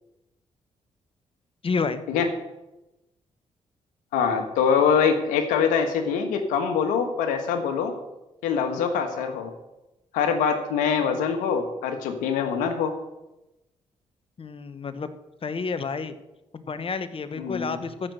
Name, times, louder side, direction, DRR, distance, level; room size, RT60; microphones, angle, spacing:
voice 1, 1.6-2.0 14.4-15.1 15.4-16.1 16.5-18.1, left 4 dB, 45° left, 11 dB, 1.2 m, -30 dB
voice 2, 4.1-7.9 8.4-9.5 10.1-12.9 17.4-17.8, left 6 dB, 90° left, 7 dB, 1.5 m, -24 dB
14.0 x 6.1 x 6.5 m, 0.97 s
supercardioid pair, 50°, 13 cm